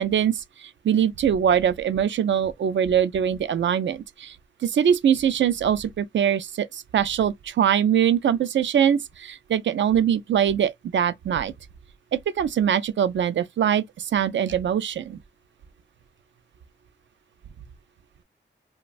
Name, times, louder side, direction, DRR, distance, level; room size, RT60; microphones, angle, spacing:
voice 1, 0.0-4.4 4.6-11.5 12.1-15.2, right 9 dB, 80° right, 0.4 m, -23 dB
3.0 x 2.2 x 2.4 m
wide cardioid pair, 160°, 19 cm